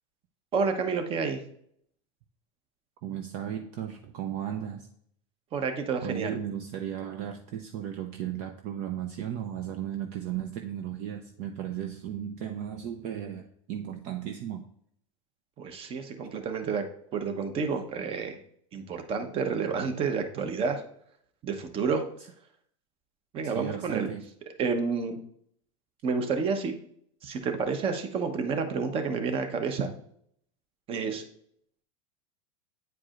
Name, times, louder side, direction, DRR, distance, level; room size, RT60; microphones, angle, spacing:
voice 1, 0.5-1.4 5.5-6.4 15.6-16.9 17.1-18.4 18.7-20.8 21.4-22.0 23.3-24.1 24.6-25.2 26.0-26.7 27.2-29.9 30.9-31.2, right 5 dB, 30° right, 7 dB, 0.9 m, -29 dB
voice 2, 3.0-4.9 6.0-14.7 23.4-24.2, right 10 dB, 50° right, 5 dB, 0.6 m, -35 dB
9.0 x 4.7 x 2.5 m, 0.67 s
supercardioid pair, 125°, 17 cm